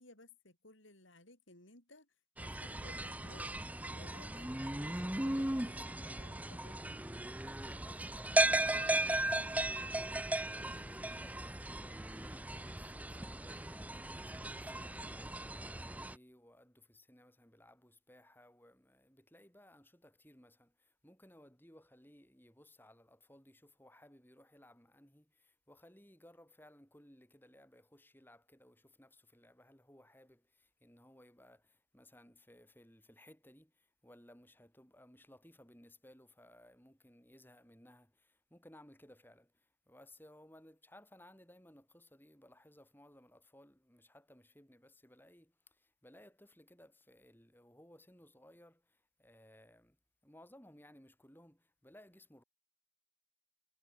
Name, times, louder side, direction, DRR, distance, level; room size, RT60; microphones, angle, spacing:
voice 1, 0.0-3.5 3.8-7.0, left 2 dB, 65° left, 6.5 m, -59 dB
sound 1, 2.4-16.2, right 1 dB, 5° right, 0.8 m, -37 dB
voice 2, 7.6-10.1 10.4-50.0 50.2-52.4, left 1 dB, 10° left, 6.1 m, -61 dB
head